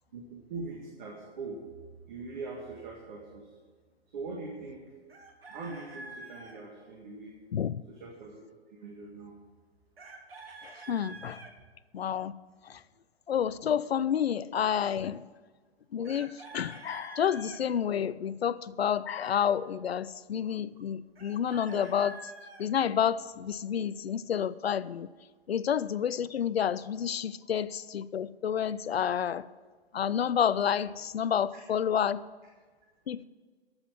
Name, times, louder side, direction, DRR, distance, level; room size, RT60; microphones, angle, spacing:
voice 1, 0.1-1.6 2.1-3.6 4.1-4.8 5.5-7.4 7.9-8.4 8.7-9.3 10.9-11.0 31.5-31.6, right 3 dB, 45° right, 0 dB, 1.8 m, -42 dB
Chicken rooster, 5.1-6.6 10.0-11.5 16.0-17.6 21.2-22.7, right 2 dB, 65° right, 1.7 m, -47 dB
voice 2, 7.5-7.8 10.6-11.4 11.9-12.3 12.6-12.8 13.3-15.2 15.9-22.2 22.6-25.1 25.5-29.5 29.9-32.2 33.1-33.2, left 8 dB, 70° left, 17 dB, 0.5 m, -29 dB
13.0 x 6.0 x 7.2 m, 1.5 s
figure-of-eight pair, 115°, 32 cm